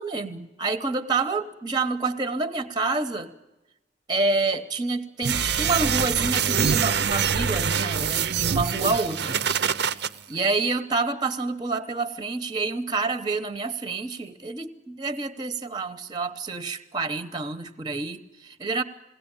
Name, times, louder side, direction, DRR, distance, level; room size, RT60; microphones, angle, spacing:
voice 1, 0.0-3.3 4.1-9.4 9.8-18.8, right 3 dB, 20° right, 11 dB, 0.9 m, -28 dB
sound 1, 5.2-10.1, right 7 dB, 55° right, 0.7 m, -24 dB
21.0 x 17.5 x 8.8 m, 1.0 s
head